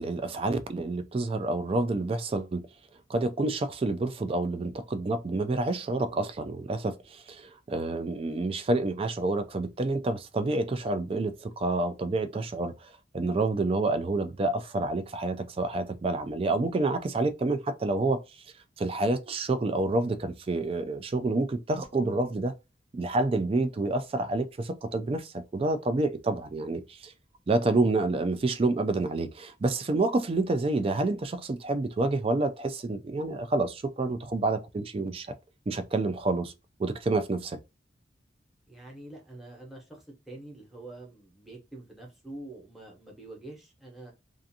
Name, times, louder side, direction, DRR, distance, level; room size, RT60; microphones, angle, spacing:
voice 1, 0.0-2.6 3.1-18.2 18.8-22.5 22.9-27.1 27.5-35.3 35.7-36.5 36.8-37.6, right 2 dB, 30° right, 0.3 m, -28 dB
voice 2, 38.7-44.1, right 2 dB, ahead, 0.9 m, -46 dB
2.5 x 2.5 x 2.7 m
head